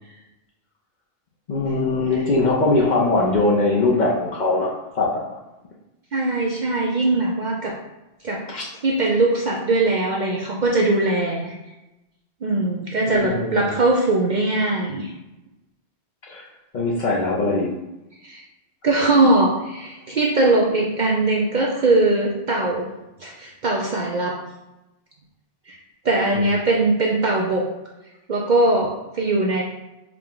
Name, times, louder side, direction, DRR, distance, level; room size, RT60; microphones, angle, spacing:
voice 1, 1.5-5.2 8.5-8.7 13.1-13.7 16.3-16.4 16.7-17.7 26.3-26.4, left 2 dB, 50° left, -3 dB, 0.7 m, -21 dB
voice 2, 6.1-7.7 8.2-8.4 8.8-11.5 12.4-15.1 18.2-18.4 18.8-22.9 23.2-24.4 25.7-25.8 26.0-27.7 28.3-29.6, right 2 dB, 55° right, -2 dB, 0.5 m, -20 dB
4.7 x 2.2 x 3.7 m, 0.98 s
omnidirectional pair, 1.2 m